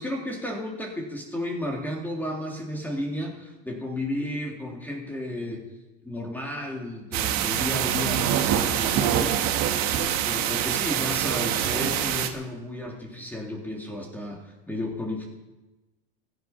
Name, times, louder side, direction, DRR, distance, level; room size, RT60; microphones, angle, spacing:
voice 1, 0.0-5.7 6.0-15.2, left 1 dB, 5° left, 0 dB, 2.9 m, -33 dB
sound 1, 7.1-12.3, right 10 dB, 55° right, 1.5 m, -25 dB
15.5 x 11.5 x 5.8 m, 1.1 s
supercardioid pair, 125°, 34 cm